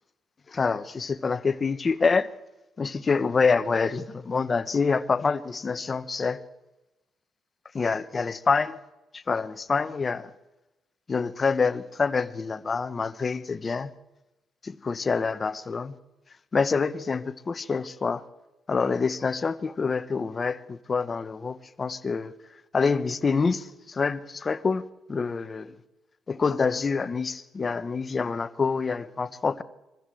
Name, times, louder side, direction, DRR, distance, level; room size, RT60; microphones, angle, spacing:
voice 1, 0.5-2.3 2.8-6.4 7.7-8.8 9.1-10.3 11.1-13.9 14.6-15.9 16.5-18.2 18.7-22.3 22.7-25.8 26.3-29.6, left 4 dB, 35° left, 1.0 m, -26 dB
22.5 x 15.0 x 7.8 m
cardioid pair, 90°, 0 cm